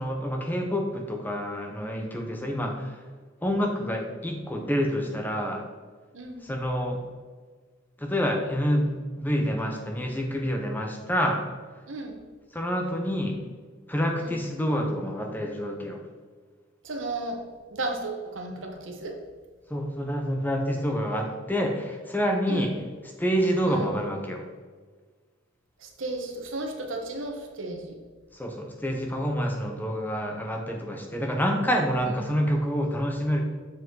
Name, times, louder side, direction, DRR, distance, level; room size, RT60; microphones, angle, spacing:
voice 1, 0.0-3.0 3.4-5.6 6.4-7.0 8.0-11.4 12.5-13.4 13.9-16.0 19.7-22.7 23.2-24.4 28.3-33.4, equal, 10° left, 2 dB, 0.7 m, -27 dB
voice 2, 11.9-12.2 14.2-14.4 16.8-17.4 17.7-19.2 22.5-22.7 23.7-23.8 25.8-28.0 32.1-32.5, right 2 dB, 70° right, 2 dB, 1.1 m, -34 dB
7.2 x 5.3 x 3.8 m, 1.5 s
head